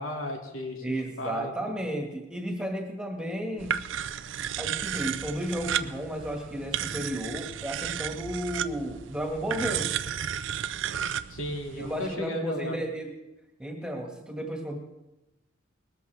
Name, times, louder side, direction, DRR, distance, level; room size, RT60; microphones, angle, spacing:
voice 1, 0.0-1.5 11.3-12.8, left 1 dB, 85° left, 1 dB, 2.5 m, -34 dB
voice 2, 0.8-3.8 4.6-9.9 11.8-13.1 13.6-14.8, right 1 dB, 5° right, 1 dB, 1.8 m, -33 dB
sound 1, 3.6-12.1, right 9 dB, 65° right, 0.5 m, -33 dB
20.5 x 13.5 x 3.5 m, 0.95 s
head